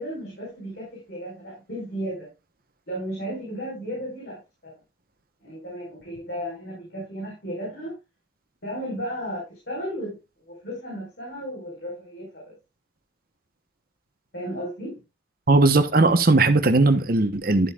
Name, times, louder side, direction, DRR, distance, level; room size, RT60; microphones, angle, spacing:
voice 1, 0.0-2.3 2.9-4.7 5.4-7.9 8.6-10.2 10.5-12.4 14.3-15.0, equal, 60° left, 5.0 m, -34 dB
voice 2, 15.5-17.7, right 2 dB, 50° right, 1.1 m, -18 dB
12.5 x 8.0 x 2.4 m
head